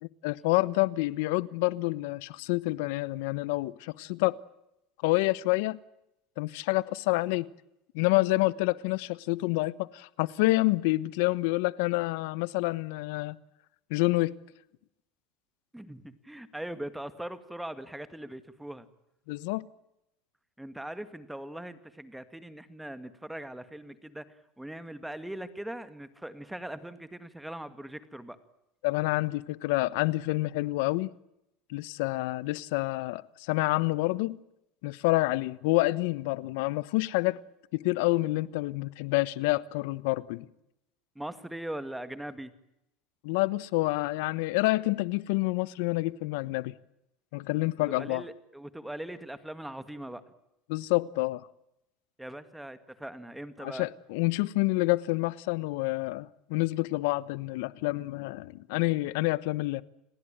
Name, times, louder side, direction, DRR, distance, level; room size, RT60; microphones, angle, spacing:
voice 1, 0.0-4.3 5.0-5.8 6.4-7.5 7.9-13.3 13.9-14.3 19.3-19.6 28.8-31.1 31.7-34.4 34.8-37.4 37.7-40.5 43.2-46.7 47.3-48.2 50.7-51.5 53.6-59.8, left 21 dB, 75° left, 1.2 m, -28 dB
voice 2, 15.7-18.9 20.6-28.4 41.2-42.5 47.9-50.2 52.2-53.9, right 1 dB, 5° right, 2.1 m, -40 dB
29.5 x 19.5 x 9.0 m
supercardioid pair, 135°, 0 cm